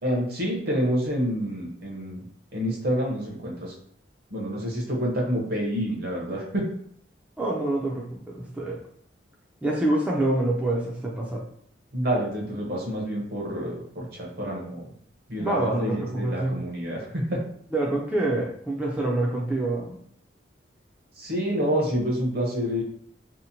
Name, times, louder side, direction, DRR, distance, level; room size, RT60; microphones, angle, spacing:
voice 1, 0.0-2.2 2.5-3.7 4.3-6.6 11.9-14.8 15.3-17.4 21.2-22.8, equal, 60° right, -2 dB, 0.8 m, -28 dB
voice 2, 7.4-8.8 9.6-11.4 15.4-16.6 17.7-20.0, right 2 dB, 10° right, -3 dB, 0.3 m, -26 dB
2.8 x 2.1 x 2.6 m, 0.65 s
head